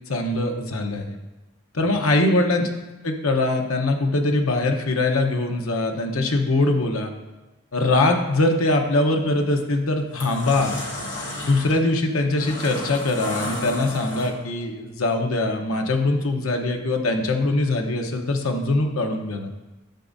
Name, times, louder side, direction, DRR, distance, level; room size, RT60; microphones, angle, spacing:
voice 1, 0.1-1.2 1.7-2.7 3.0-7.1 7.7-10.8 11.4-19.5, left 2 dB, 80° left, 4 dB, 0.9 m, -22 dB
sound 1, 9.2-9.5 9.9-14.6, left 1 dB, 55° left, 1.9 m, -33 dB
10.5 x 7.1 x 2.6 m, 1.1 s
head